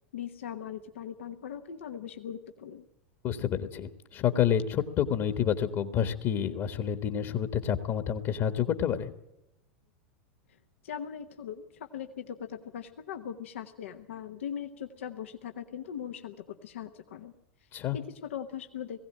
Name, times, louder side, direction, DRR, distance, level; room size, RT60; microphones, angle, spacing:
voice 1, 0.1-2.8 10.5-10.6 10.8-17.3 17.6-17.7 17.9-19.0, left 8 dB, 75° left, 6 dB, 1.1 m, -40 dB
voice 2, 3.2-9.1 17.7-18.0, left 9 dB, 45° left, 8 dB, 1.5 m, -29 dB
19.5 x 16.0 x 8.8 m, 0.88 s
hypercardioid pair, 95°, 7 cm